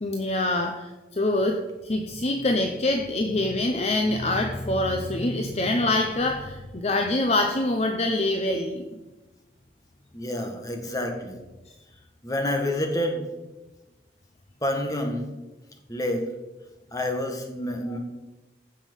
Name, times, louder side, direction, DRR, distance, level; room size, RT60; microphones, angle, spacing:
voice 1, 0.0-8.8 17.9-18.0, left 2 dB, 35° left, 4 dB, 0.8 m, -25 dB
voice 2, 10.1-11.4 12.2-13.2 14.6-15.3 15.9-16.3 16.9-18.0, left 1 dB, 20° left, 4 dB, 1.5 m, -28 dB
15.0 x 6.0 x 5.4 m, 1.1 s
head